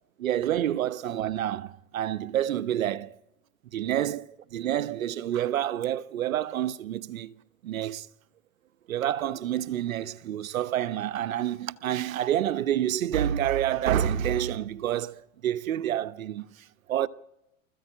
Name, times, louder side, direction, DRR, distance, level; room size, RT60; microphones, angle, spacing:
voice 1, 0.2-3.1 3.7-7.3 7.6-8.1 8.9-17.1, right 11 dB, 75° right, 1.1 m, -28 dB
20.5 x 14.5 x 8.8 m
hypercardioid pair, 105°, 41 cm